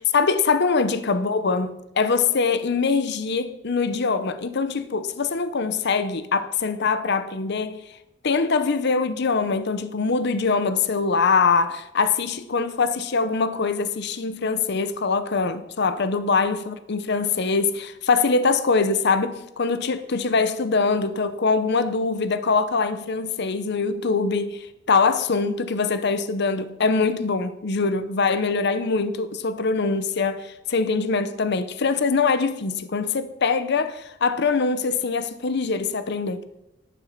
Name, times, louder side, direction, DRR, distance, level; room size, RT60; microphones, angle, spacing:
voice 1, 0.0-8.0 8.2-36.4, left 4 dB, 60° left, 0.8 m, -23 dB
11.5 x 10.5 x 5.8 m
head